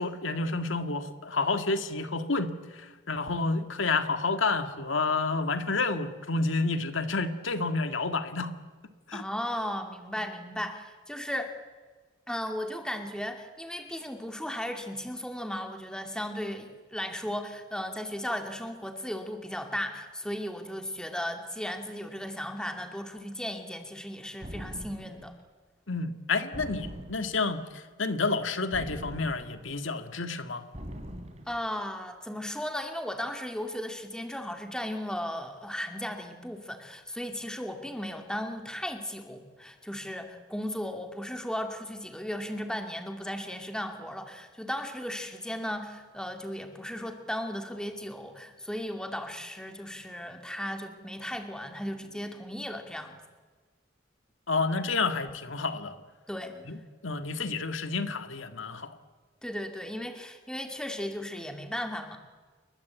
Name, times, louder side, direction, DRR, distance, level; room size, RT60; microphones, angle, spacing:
voice 1, 0.0-8.5 9.1-9.2 25.9-30.6 54.5-56.0 56.7-56.8 57.0-59.0, left 3 dB, 90° left, 8 dB, 1.9 m, -30 dB
voice 2, 9.1-11.6 12.3-25.3 31.5-53.2 56.3-56.8 59.4-62.2, equal, 5° left, 5 dB, 2.4 m, -36 dB
sound 1, 24.4-25.3 26.5-27.5 28.7-29.8 30.7-31.6, equal, 35° right, 3.2 m, -42 dB
29.0 x 22.0 x 8.3 m, 1.4 s
head